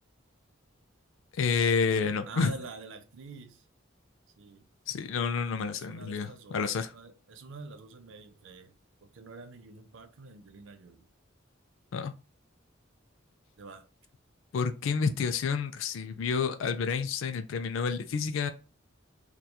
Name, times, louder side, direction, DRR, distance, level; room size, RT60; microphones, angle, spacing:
voice 1, 1.3-2.5 4.9-6.9 11.9-12.1 14.5-18.5, left 5 dB, 70° left, 0.3 m, -29 dB
voice 2, 2.3-3.7 4.4-4.7 5.7-8.8 9.0-11.1 13.6-13.9, right 3 dB, 70° right, 0.5 m, -47 dB
2.8 x 2.2 x 2.2 m
head